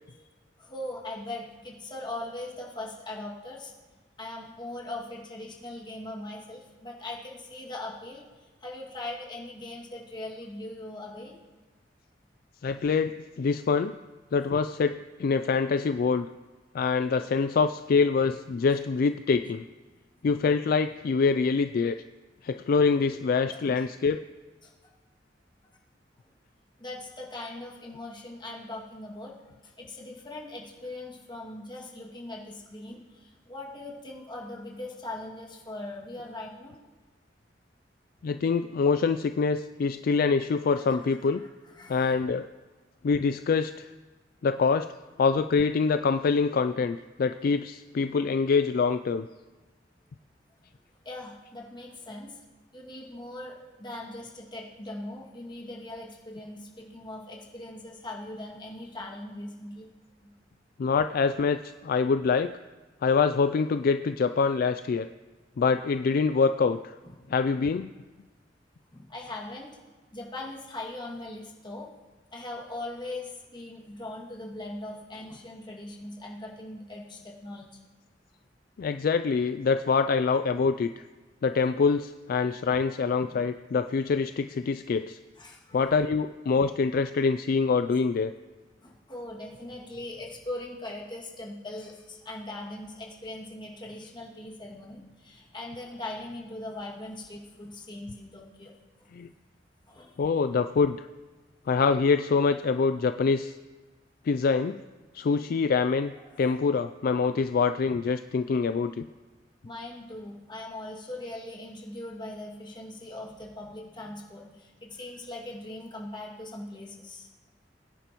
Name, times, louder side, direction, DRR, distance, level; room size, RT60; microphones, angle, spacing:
voice 1, 0.6-3.7 4.2-11.4 23.7-23.9 24.6-24.9 26.8-29.3 29.6-36.8 40.7-41.5 41.8-42.2 51.0-52.4 52.7-59.9 60.2-60.3 67.0-67.2 68.9-69.8 70.1-71.9 72.3-77.8 85.4-85.9 88.8-99.1 99.9-100.1 106.3-106.5 109.6-117.3, left 2 dB, 25° left, -3 dB, 2.2 m, -40 dB
voice 2, 12.6-14.0 14.3-16.3 16.7-19.6 20.2-22.0 22.4-24.2 38.2-41.4 41.9-42.5 43.0-43.9 44.4-44.9 45.2-49.3 60.8-62.6 63.0-65.1 65.6-66.8 67.3-67.9 78.8-81.1 81.4-85.2 85.7-88.3 99.1-99.3 100.2-101.1 101.7-103.5 104.2-104.8 105.1-106.1 106.4-109.1, left 5 dB, 55° left, 10 dB, 0.3 m, -25 dB
21.5 x 10.0 x 3.0 m, 1.3 s
head